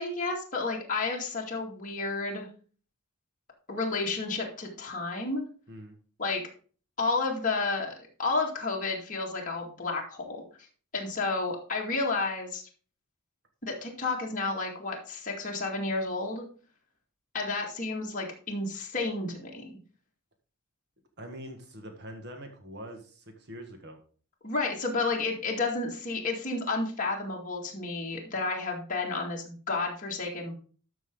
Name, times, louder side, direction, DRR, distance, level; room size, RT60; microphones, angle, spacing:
voice 1, 0.0-2.5 3.7-5.4 6.2-6.4 7.0-7.9 8.2-10.4 10.9-12.6 13.6-16.4 17.3-19.8 24.4-30.6, left 3 dB, 35° left, -2 dB, 2.1 m, -31 dB
voice 2, 21.2-24.0, equal, 50° right, 4 dB, 1.7 m, -44 dB
13.0 x 5.9 x 3.8 m, 0.41 s
head